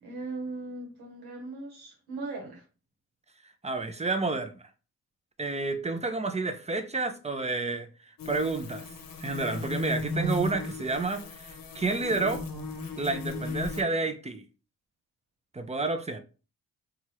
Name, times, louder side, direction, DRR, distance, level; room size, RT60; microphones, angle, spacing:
voice 1, 0.0-2.6, right 2 dB, 90° right, 1.0 m, -38 dB
voice 2, 3.6-4.6 5.4-7.9 8.3-8.9 9.2-12.4 13.0-14.4 15.5-16.2, right 3 dB, 20° right, 0.5 m, -30 dB
sound 1, 8.2-13.8, left 3 dB, 65° left, 0.8 m, -35 dB
2.8 x 2.4 x 3.1 m
supercardioid pair, 45°, 36 cm